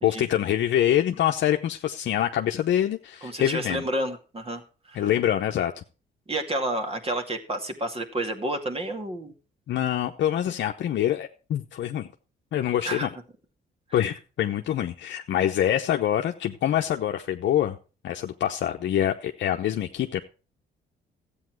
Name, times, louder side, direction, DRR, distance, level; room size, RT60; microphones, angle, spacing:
voice 1, 0.0-3.8 4.9-5.7 9.7-12.1 12.5-13.1 13.9-17.8 18.0-20.2, left 11 dB, 70° left, 4 dB, 0.8 m, -25 dB
voice 2, 3.2-4.6 4.9-5.1 6.3-9.3 12.9-13.1, right 1 dB, 30° right, 5 dB, 2.3 m, -30 dB
13.5 x 8.6 x 4.7 m, 0.35 s
cardioid pair, 90°, 20 cm